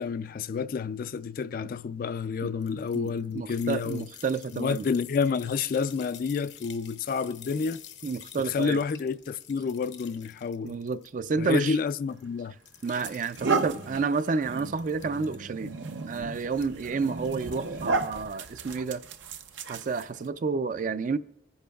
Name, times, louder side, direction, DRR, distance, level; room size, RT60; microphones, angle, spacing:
voice 1, 0.0-4.1 4.5-7.8 8.4-10.8 11.4-12.5, left 5 dB, 50° left, 0.3 m, -29 dB
sound 1, 2.6-11.3 11.6-12.2 12.6-13.7 14.1-15.4 16.5-16.9 17.2-17.4, left 10 dB, 75° left, 0.9 m, -49 dB
voice 2, 2.9-4.9 8.0-8.8 10.6-11.8 12.8-15.7 16.1-19.0 19.7-21.2, right 4 dB, 45° right, 0.4 m, -30 dB
sound 2, 12.1-12.3 12.9-20.3, right 4 dB, 85° right, 0.7 m, -34 dB
25.0 x 10.0 x 2.3 m
head